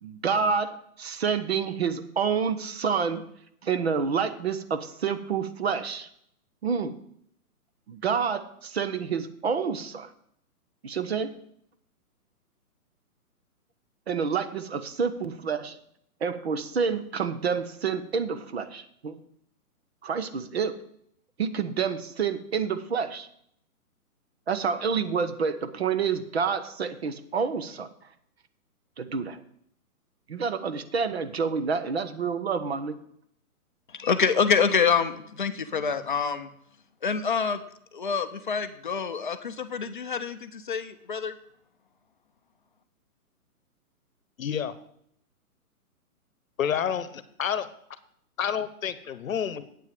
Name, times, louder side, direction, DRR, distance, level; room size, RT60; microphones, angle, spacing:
voice 1, 0.0-3.2 3.6-6.1 6.6-6.9 7.9-10.1 10.8-11.3 14.1-15.8 16.2-19.2 20.0-20.8 21.4-23.3 24.5-27.9 29.0-29.4 30.3-33.0, right 6 dB, 45° right, 12 dB, 0.8 m, -28 dB
voice 2, 33.9-36.5 37.0-37.6 37.9-41.3, left 6 dB, 35° left, 10 dB, 0.5 m, -26 dB
voice 3, 44.4-44.7 46.6-47.7 48.4-49.6, left 8 dB, 60° left, 15 dB, 1.0 m, -29 dB
8.6 x 6.3 x 7.4 m, 0.69 s
hypercardioid pair, 165°, 45 cm